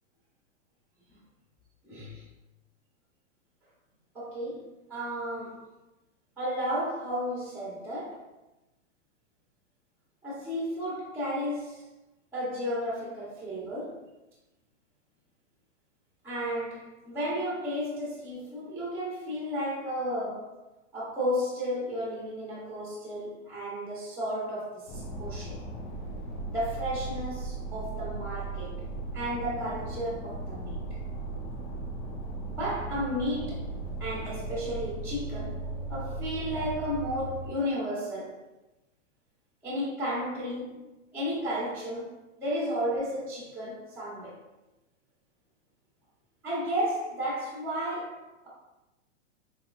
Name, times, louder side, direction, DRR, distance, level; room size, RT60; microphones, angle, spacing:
voice 1, 1.8-2.2 4.1-5.7 6.4-8.2 10.2-11.9 12.3-14.1 16.2-20.6 20.9-25.6 26.5-28.8 29.1-30.8 32.5-33.7 34.0-38.4 39.6-40.8 41.1-44.4 46.4-48.5, equal, 5° right, 1.0 m, -33 dB
sound 1, 24.9-37.5, right 2 dB, 20° left, 0.4 m, -37 dB
4.1 x 2.9 x 2.4 m
hypercardioid pair, 130°, 37 cm